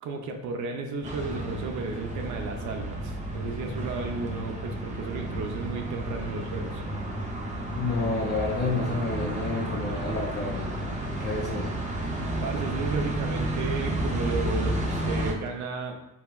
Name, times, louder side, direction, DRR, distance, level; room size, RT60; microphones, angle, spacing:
voice 1, 0.0-6.8 12.4-16.0, right 4 dB, 75° right, 3 dB, 0.5 m, -33 dB
sound 1, 1.0-15.3, right 1 dB, 25° right, 0.6 m, -31 dB
voice 2, 7.8-10.8 11.2-11.8, left 3 dB, 35° left, -5 dB, 0.6 m, -30 dB
3.0 x 2.7 x 2.3 m, 0.91 s
cardioid pair, 90°, 30 cm